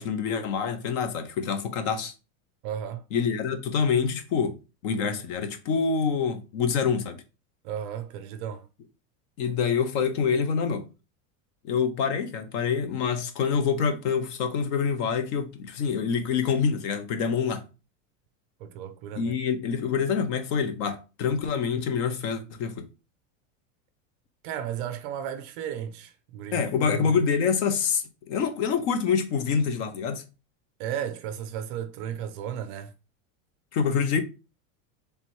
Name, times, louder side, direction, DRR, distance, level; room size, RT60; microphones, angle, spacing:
voice 1, 0.0-2.1 3.1-4.6 4.8-7.2 9.4-10.9 11.6-17.6 19.2-22.9 26.5-30.2 33.7-34.2, left 6 dB, 55° left, 0.9 m, -26 dB
voice 2, 2.6-3.0 7.6-8.7 18.6-19.3 24.4-27.1 30.8-32.9, right 9 dB, 40° right, 0.4 m, -34 dB
3.4 x 2.9 x 4.5 m
supercardioid pair, 160°, 40 cm